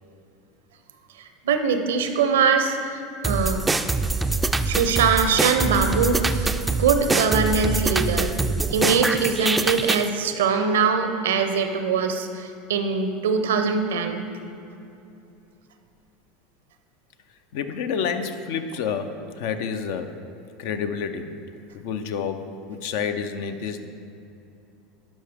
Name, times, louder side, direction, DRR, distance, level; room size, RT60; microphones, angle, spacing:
voice 1, 1.2-3.6 4.7-8.3 8.7-14.3, right 5 dB, 80° right, 7 dB, 0.6 m, -22 dB
sound 1, 3.2-10.1, right 3 dB, 15° right, 0.3 m, -24 dB
voice 2, 17.5-20.1 20.6-21.3 21.7-23.9, left 6 dB, 65° left, 8 dB, 0.5 m, -29 dB
11.5 x 4.9 x 3.5 m, 2.7 s
hypercardioid pair, 85°, 0 cm